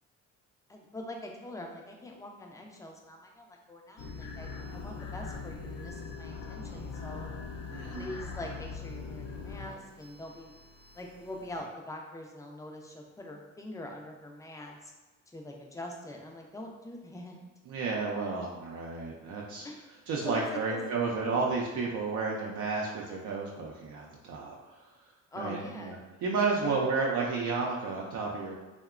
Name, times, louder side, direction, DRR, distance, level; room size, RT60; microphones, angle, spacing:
voice 1, 0.7-7.3 7.9-10.5 10.9-14.9 15.3-17.4 19.6-20.0 20.2-20.8 25.3-26.0 26.6-26.8, left 1 dB, 10° left, 0 dB, 0.4 m, -43 dB
sound 1, 4.0-11.6, left 4 dB, 55° left, 0.6 m, -42 dB
voice 2, 7.7-8.1 17.7-19.7 20.1-24.8 25.4-26.0 26.2-28.5, right 4 dB, 75° right, -2 dB, 0.5 m, -32 dB
2.7 x 2.1 x 2.4 m, 1.2 s
cardioid pair, 90°, 30 cm